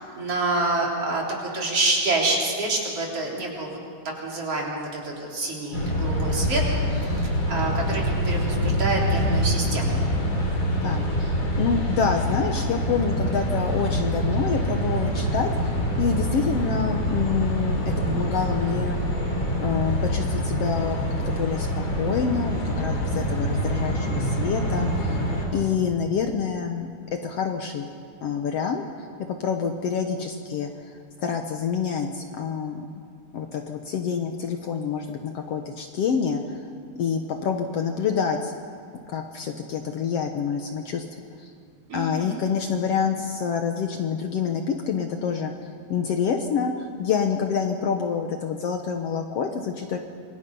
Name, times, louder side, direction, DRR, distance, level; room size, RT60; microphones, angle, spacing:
voice 1, 0.0-3.8 4.2-6.6 6.9-10.0 41.9-42.4, right 2 dB, 50° right, -2 dB, 4.6 m, -27 dB
sound 1, 5.7-25.5, equal, 40° left, 4.8 m, -25 dB
voice 2, 10.8-17.8 18.1-19.0 19.6-25.2 25.5-27.9 28.2-28.8 29.4-32.9 33.3-36.7 37.0-38.5 39.1-41.0 41.9-50.0, left 6 dB, 65° left, 4 dB, 1.8 m, -27 dB
27.5 x 23.5 x 5.4 m, 2.3 s
omnidirectional pair, 3.5 m